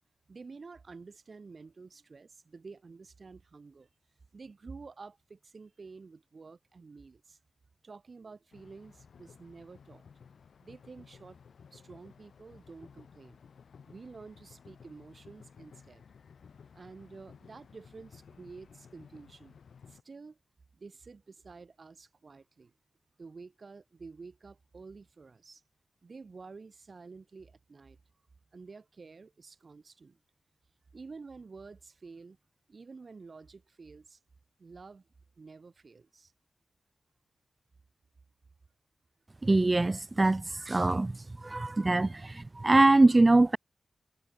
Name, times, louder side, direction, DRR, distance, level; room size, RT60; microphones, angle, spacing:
voice 1, 0.3-3.9 4.3-7.4 7.8-10.0 10.6-11.4 11.7-13.4 13.9-16.0 16.7-19.6 19.9-20.4 20.7-22.7 23.2-25.6 26.0-28.0 28.5-30.2 30.9-32.4 32.7-34.2 34.6-35.1 35.4-36.3, right 4 dB, 45° right, 2.1 m, -50 dB
sound 1, 8.5-20.0, left 6 dB, 90° left, 3.4 m, -56 dB
voice 2, 39.4-41.2 41.4-43.6, right 2 dB, 25° right, 0.3 m, -23 dB
wide cardioid pair, 145°, 0 cm